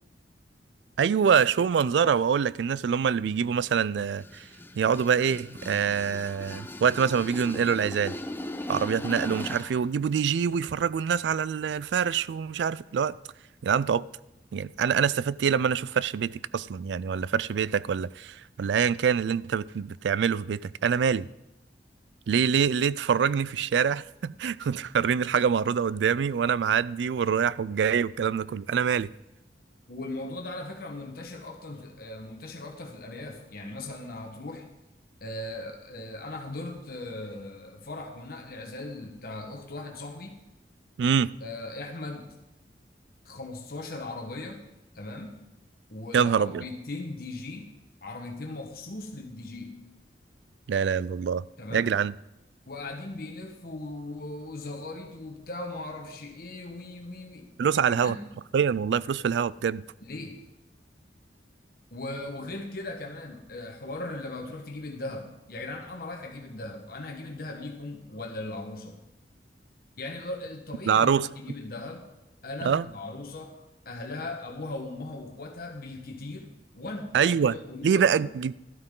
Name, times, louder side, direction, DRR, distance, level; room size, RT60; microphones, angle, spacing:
voice 1, 1.0-4.4 4.8-8.1 8.7-13.1 13.6-14.0 14.5-21.3 22.3-29.1 41.0-41.3 46.1-46.6 50.7-51.4 51.7-52.1 57.6-58.2 58.5-59.8 70.9-71.3 72.6-72.9 77.1-77.6 77.8-78.5, right 7 dB, 80° right, 0.3 m, -25 dB
sound 1, 4.1-9.8, left 1 dB, 10° left, 0.6 m, -38 dB
voice 2, 29.9-34.7 35.2-40.4 41.4-42.3 43.2-44.6 44.9-45.4 45.9-47.7 48.0-49.8 51.6-52.0 52.7-57.5 57.8-58.2 60.0-60.4 61.9-69.0 70.0-72.1 72.4-78.2, left 2 dB, 55° left, 1.2 m, -38 dB
13.0 x 12.5 x 3.8 m
head